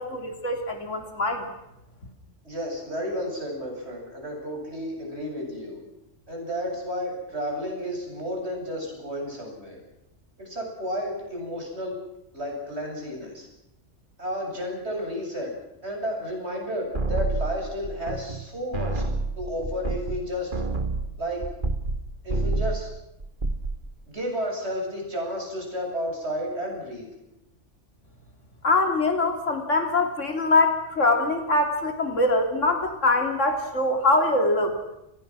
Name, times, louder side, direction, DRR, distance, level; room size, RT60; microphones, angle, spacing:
voice 1, 0.0-1.5 28.6-34.8, left 2 dB, 80° left, 5 dB, 3.4 m, -23 dB
voice 2, 2.4-5.8 6.3-9.8 10.4-12.0 12.3-13.5 14.2-15.5 15.8-19.0 19.4-20.5 21.2-21.4 22.2-22.9 24.1-27.1, equal, 60° right, 0 dB, 8.2 m, -32 dB
sound 1, 16.9-18.5 18.7-22.0 22.3-22.9 23.2-23.8, right 3 dB, 45° right, 2.2 m, -28 dB
30.0 x 22.0 x 6.2 m, 0.87 s
omnidirectional pair, 1.3 m